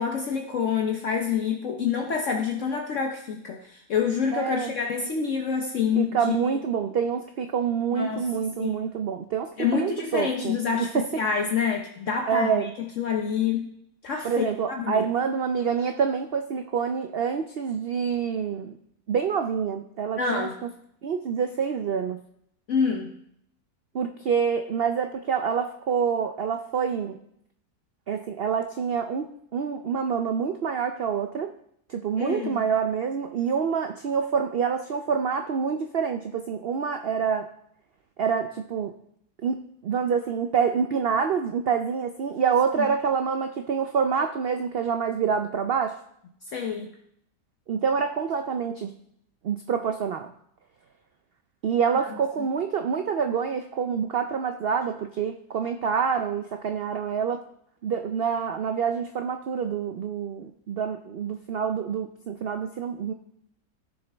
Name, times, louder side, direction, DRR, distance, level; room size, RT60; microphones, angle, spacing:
voice 1, 0.0-6.4 7.9-8.3 8.6-8.9 9.6-12.7 13.0-13.7 14.0-15.0 20.2-20.5 22.7-23.1 32.2-32.6 42.8-42.9 46.5-46.9, left 6 dB, 55° left, 2 dB, 1.1 m, -27 dB
voice 2, 4.3-4.7 6.0-11.1 12.3-12.7 14.2-18.8 19.1-20.5 21.0-22.2 23.9-27.2 28.1-31.5 31.9-37.5 38.2-38.9 39.4-46.0 47.7-48.9 49.4-50.3 51.6-57.4 57.8-63.1, right 6 dB, 85° right, 7 dB, 0.5 m, -27 dB
16.0 x 6.8 x 3.4 m, 0.73 s
omnidirectional pair, 1.7 m